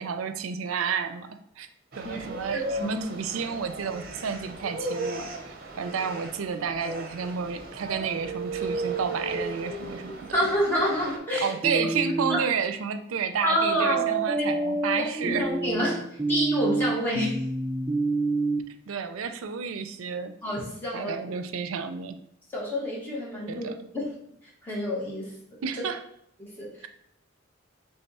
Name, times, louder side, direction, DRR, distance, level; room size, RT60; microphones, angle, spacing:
voice 1, 0.0-1.7 2.0-10.4 11.3-15.5 18.9-20.3 20.9-22.2 23.5-23.7 25.6-26.0, right 6 dB, 90° right, 9 dB, 0.4 m, -31 dB
sound 1, 1.9-11.2, right 2 dB, 50° right, 0.7 m, -35 dB
voice 2, 2.4-3.0 10.3-11.8 12.3-12.4 13.4-14.1 14.4-14.5 15.0-17.4 20.4-21.2 22.5-23.7 23.9-24.2 24.6-25.3 26.4-26.9, left 1 dB, 10° left, -6 dB, 1.3 m, -28 dB
sound 2, 11.6-12.4 13.6-18.6, right 3 dB, 10° right, 0.3 m, -27 dB
3.5 x 3.4 x 4.1 m, 0.70 s
head